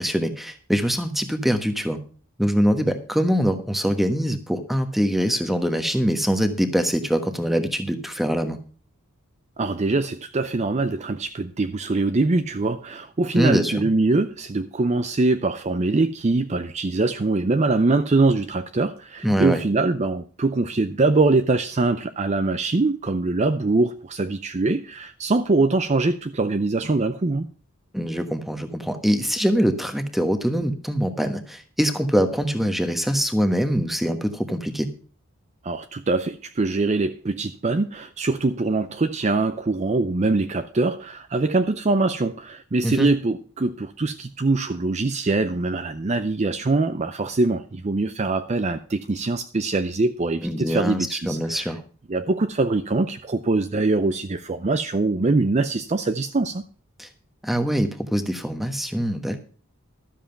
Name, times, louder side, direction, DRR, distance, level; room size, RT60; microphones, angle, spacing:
voice 1, 0.0-2.0 2.4-8.6 13.3-13.8 19.2-19.6 27.9-34.9 42.8-43.1 50.4-51.8 57.0-57.1 57.4-59.4, equal, ahead, 1.2 m, -23 dB
voice 2, 9.6-27.5 35.6-51.7 52.1-56.6, right 3 dB, 30° right, 0.5 m, -23 dB
12.5 x 7.4 x 5.7 m
head